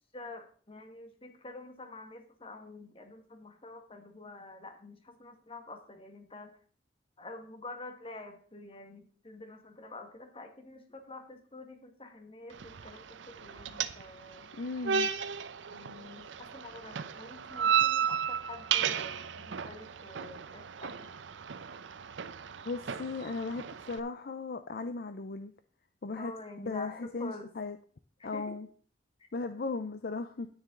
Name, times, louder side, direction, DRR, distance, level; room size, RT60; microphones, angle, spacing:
voice 1, 0.1-6.5 7.2-14.5 15.7-21.1 26.2-27.5 28.3-28.6, left 2 dB, 30° left, 6 dB, 1.6 m, -47 dB
sound 1, 12.5-24.0, right 8 dB, 85° right, 0.6 m, -34 dB
voice 2, 14.6-15.1 22.7-25.5 26.0-26.3 26.6-27.8 28.2-28.7 29.3-30.5, left 3 dB, 55° left, 10 dB, 0.5 m, -36 dB
9.6 x 9.6 x 3.8 m, 0.43 s
head